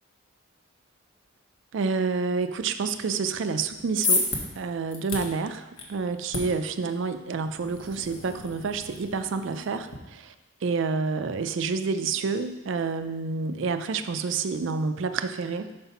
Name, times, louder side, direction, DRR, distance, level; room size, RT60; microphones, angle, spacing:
voice 1, 1.7-4.3 4.6-5.6 5.9-10.3 10.6-15.7, right 4 dB, 65° right, 9 dB, 0.4 m, -28 dB
sound 1, 3.6-10.0, left 3 dB, 80° left, 1.3 m, -33 dB
5.7 x 5.0 x 5.6 m, 1.0 s
head